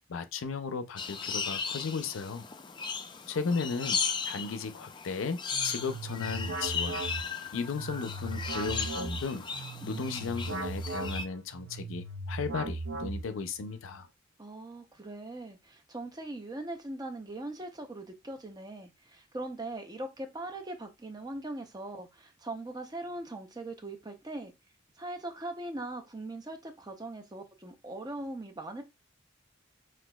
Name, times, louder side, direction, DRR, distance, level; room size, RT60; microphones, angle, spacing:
voice 1, 0.1-2.4 3.3-4.0 4.3-7.0 7.5-9.5 9.8-14.1, left 5 dB, 80° left, 0.5 m, -35 dB
sound 1, 1.0-11.3, left 6 dB, 25° left, 0.4 m, -36 dB
sound 2, 5.5-13.6, right 2 dB, 80° right, 0.5 m, -38 dB
voice 2, 9.8-10.4 14.4-24.5 25.0-28.8, right 2 dB, 20° right, 0.6 m, -40 dB
6.0 x 2.4 x 2.3 m
head